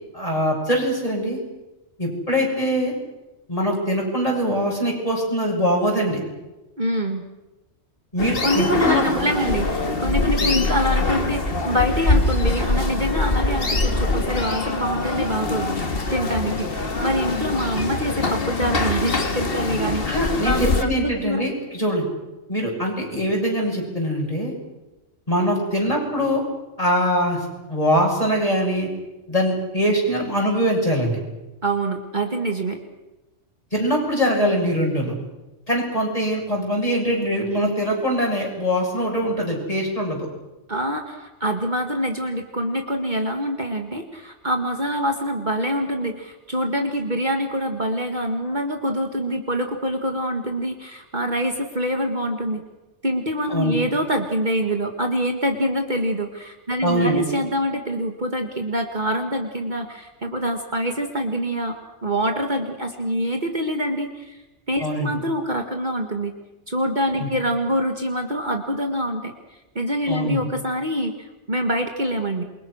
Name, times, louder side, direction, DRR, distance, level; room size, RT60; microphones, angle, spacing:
voice 1, 0.1-1.4 2.0-2.9 3.5-6.2 8.1-9.0 10.4-10.5 20.0-22.0 22.5-24.5 25.3-26.4 26.8-27.4 27.7-28.9 29.3-31.2 33.7-35.1 35.7-40.3 53.5-53.8 56.8-57.2 64.8-65.1 67.2-67.3 70.1-70.4, equal, 30° left, -1 dB, 7.6 m, -22 dB
voice 2, 6.8-7.2 8.4-20.1 20.4-21.4 31.6-32.8 40.7-52.6 53.0-61.8 62.0-64.4 64.7-66.3 66.7-69.3 69.8-72.4, equal, 40° right, 4 dB, 2.0 m, -25 dB
sound 1, 8.2-20.8, left 3 dB, 50° left, 2.1 m, -23 dB
28.0 x 23.5 x 6.4 m, 1.0 s
omnidirectional pair, 1.2 m